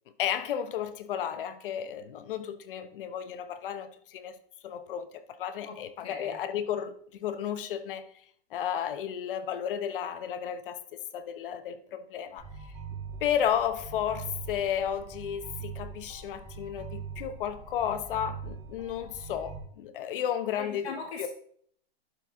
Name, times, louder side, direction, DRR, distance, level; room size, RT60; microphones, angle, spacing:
voice 1, 0.2-4.3 4.6-6.9 7.2-8.0 8.5-12.4 13.2-20.9 21.2-21.3, left 9 dB, 60° left, 0.9 m, -33 dB
voice 2, 5.6-6.4 20.5-21.3, left 5 dB, 80° left, 2.0 m, -40 dB
sound 1, 12.4-19.6, right 5 dB, 10° right, 0.7 m, -42 dB
11.5 x 4.5 x 3.7 m
hypercardioid pair, 160°, 31 cm